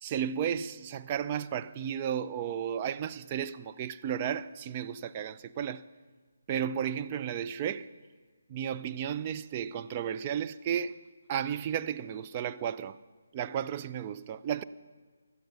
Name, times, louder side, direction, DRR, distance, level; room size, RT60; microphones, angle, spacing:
voice 1, 0.0-5.9 6.5-7.9 8.5-11.0 11.3-13.0 13.3-14.6, right 9 dB, 25° right, 0.5 m, -33 dB
18.0 x 12.5 x 6.0 m
figure-of-eight pair, 145°, 0 cm